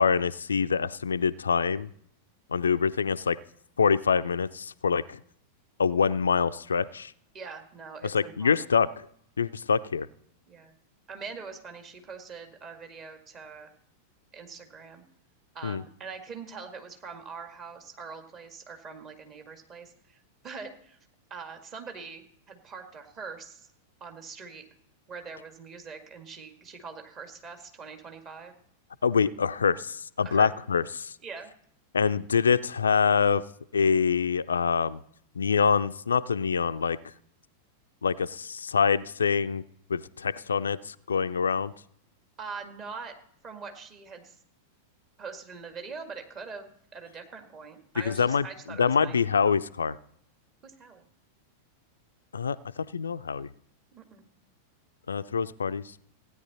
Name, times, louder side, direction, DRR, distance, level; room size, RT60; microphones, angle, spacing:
voice 1, 0.0-1.9 2.5-3.4 3.8-5.2 5.8-7.1 8.0-8.9 9.4-10.1 15.6-15.8 29.0-31.1 31.9-33.4 33.7-35.0 35.4-37.0 38.0-39.6 39.9-41.7 48.1-50.0 52.3-53.5 55.1-55.8, left 6 dB, 75° left, 14 dB, 0.4 m, -25 dB
voice 2, 7.3-8.8 10.5-10.7 11.1-13.7 14.3-15.0 15.5-20.2 20.4-21.0 21.3-23.7 24.0-24.7 25.1-28.5 30.2-30.5 31.2-31.5 42.4-43.1 43.4-44.4 45.2-49.2 50.6-51.1 53.9-54.3, right 5 dB, 30° right, 5 dB, 2.0 m, -43 dB
16.0 x 9.6 x 4.1 m, 0.68 s
figure-of-eight pair, 90°, 0 cm